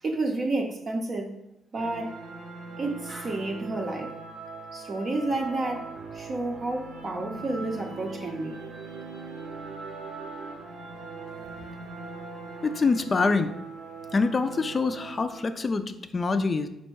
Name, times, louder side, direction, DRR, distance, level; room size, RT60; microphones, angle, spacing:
voice 1, 0.0-1.4 1.7-2.2 2.8-4.1 4.7-8.6, right 2 dB, 40° right, 2 dB, 0.6 m, -30 dB
sound 1, 1.7-15.6, right 3 dB, 75° right, 0.8 m, -41 dB
voice 2, 12.6-13.5 14.1-16.7, left 4 dB, 35° left, 10 dB, 0.3 m, -25 dB
4.3 x 2.1 x 4.6 m, 0.85 s
cardioid pair, 90°, 0 cm